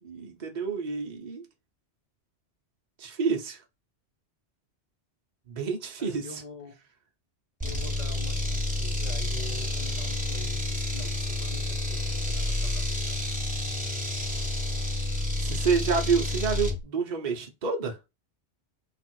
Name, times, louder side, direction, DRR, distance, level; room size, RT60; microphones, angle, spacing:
voice 1, 0.0-1.4 3.0-3.6 5.5-6.4 15.4-18.0, right 5 dB, 45° right, 0.8 m, -28 dB
voice 2, 6.0-6.7 7.7-13.4, left 3 dB, 45° left, 0.9 m, -46 dB
sound 1, 7.6-16.8, left 2 dB, 10° right, 1.0 m, -29 dB
3.5 x 2.4 x 4.4 m
omnidirectional pair, 1.2 m